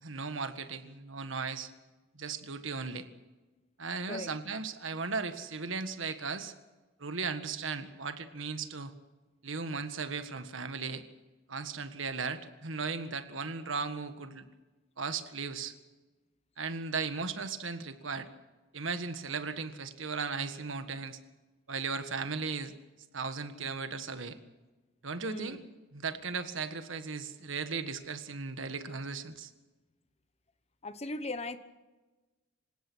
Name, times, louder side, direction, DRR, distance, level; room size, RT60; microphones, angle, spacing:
voice 1, 0.0-1.7 2.1-3.1 3.8-6.5 7.0-8.9 9.4-11.0 11.5-14.5 15.0-15.7 16.6-18.3 18.7-21.2 21.7-22.7 23.1-24.4 25.0-25.6 25.9-29.5, right 4 dB, 75° right, 9 dB, 1.6 m, -36 dB
voice 2, 25.2-25.6 30.8-31.6, left 2 dB, 30° left, 12 dB, 1.1 m, -38 dB
27.0 x 17.0 x 6.3 m, 1.2 s
head